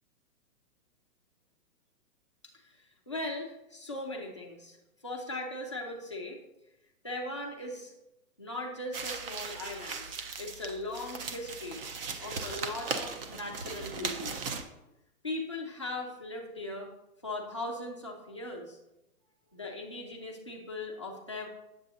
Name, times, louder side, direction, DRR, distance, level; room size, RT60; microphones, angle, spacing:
voice 1, 3.1-4.8 5.0-6.4 7.0-7.9 8.4-10.1 10.4-11.8 12.2-14.4 15.2-16.9 17.2-18.8 19.5-21.5, left 2 dB, 20° left, -1 dB, 0.4 m, -39 dB
sound 1, 8.9-14.6, right 4 dB, 40° right, 0.6 m, -38 dB
8.8 x 7.3 x 2.6 m, 0.91 s
hypercardioid pair, 160°, 45 cm